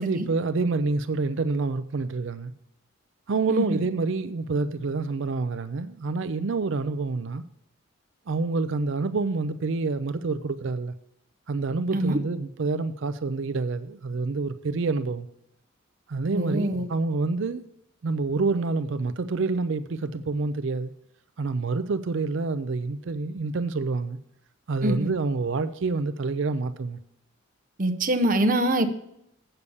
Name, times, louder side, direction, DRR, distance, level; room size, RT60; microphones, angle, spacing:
voice 1, 0.0-2.5 3.3-7.4 8.3-10.9 11.5-15.3 16.1-17.6 18.0-20.9 21.4-24.2 24.7-27.0, right 3 dB, 60° right, 0.5 m, -27 dB
voice 2, 3.5-3.8 11.9-12.2 16.3-16.9 24.8-25.1 27.8-28.9, right 1 dB, 40° right, 0.8 m, -24 dB
8.3 x 6.7 x 7.0 m
head